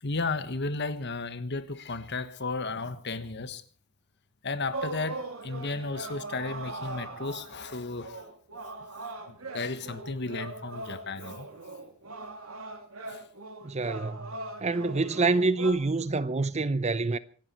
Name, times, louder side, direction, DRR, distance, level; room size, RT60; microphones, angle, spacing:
voice 1, 0.0-3.6 4.4-8.3 9.3-11.5 13.1-13.3, left 3 dB, 55° left, 1.5 m, -34 dB
sound 1, 4.7-15.7, right 2 dB, 80° right, 3.1 m, -40 dB
voice 2, 13.6-14.3 14.6-17.2, right 3 dB, 30° right, 0.7 m, -26 dB
26.0 x 11.5 x 4.5 m
head